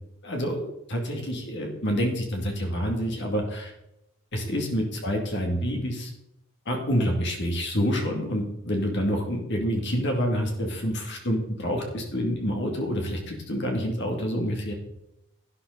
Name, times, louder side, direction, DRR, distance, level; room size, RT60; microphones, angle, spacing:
voice 1, 0.2-3.7 4.3-6.1 6.7-14.7, equal, 55° left, 2 dB, 2.5 m, -27 dB
12.0 x 9.9 x 4.0 m, 0.86 s
head